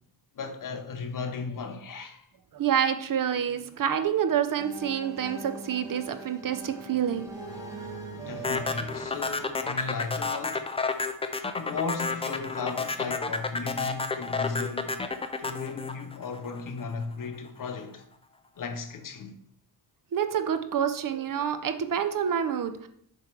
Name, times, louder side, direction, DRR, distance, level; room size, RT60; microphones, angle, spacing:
voice 1, 0.3-2.3 8.1-10.7 11.5-15.0 15.4-18.1 18.6-19.4, left 5 dB, 45° left, 0.8 m, -36 dB
voice 2, 2.5-7.3 20.1-22.9, right 8 dB, 50° right, 0.6 m, -27 dB
sound 1, 4.6-10.3, right 2 dB, 10° right, 1.2 m, -42 dB
sound 2, 8.4-16.8, left 3 dB, 15° left, 0.4 m, -30 dB
7.6 x 3.2 x 5.9 m
wide cardioid pair, 155°, 43 cm